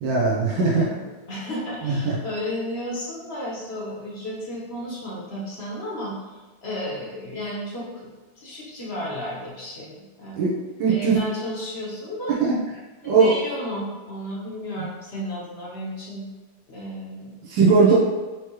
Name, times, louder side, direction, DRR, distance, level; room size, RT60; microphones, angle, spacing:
voice 1, 0.0-0.9 1.8-2.1 10.4-10.5 10.8-11.2 12.3-12.6 13.0-13.3 17.4-18.0, right 4 dB, 90° right, -4 dB, 1.6 m, -19 dB
voice 2, 0.5-10.4 10.9-12.4 13.0-16.3 16.7-17.3, equal, 45° left, -5 dB, 0.9 m, -33 dB
5.0 x 3.0 x 3.1 m, 1.3 s
omnidirectional pair, 2.1 m